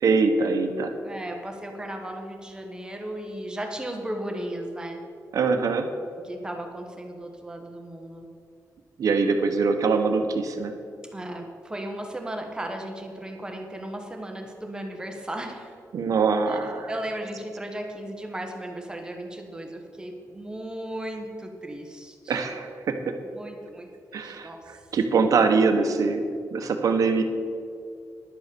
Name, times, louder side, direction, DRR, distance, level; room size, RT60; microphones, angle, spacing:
voice 1, 0.0-0.9 5.3-5.9 9.0-10.7 15.9-16.9 22.3-23.0 24.1-26.2 26.5-27.2, right 4 dB, 65° right, 6 dB, 1.1 m, -23 dB
voice 2, 1.0-5.0 6.2-8.3 11.1-15.8 16.5-16.6 16.9-22.5 23.3-24.6, right 1 dB, 15° right, 3 dB, 1.1 m, -36 dB
11.0 x 8.2 x 6.9 m, 2.3 s
wide cardioid pair, 180°, 6 cm